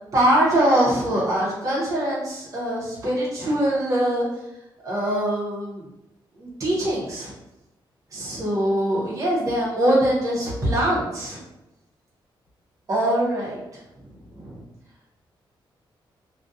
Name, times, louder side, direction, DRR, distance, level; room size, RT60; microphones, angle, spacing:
voice 1, 0.1-4.3 4.8-5.8 6.4-7.3 8.1-11.4 12.9-13.6 14.3-14.6, right 1 dB, 40° right, -6 dB, 0.8 m, -23 dB
2.3 x 2.2 x 2.6 m, 0.94 s
wide cardioid pair, 150°, 9 cm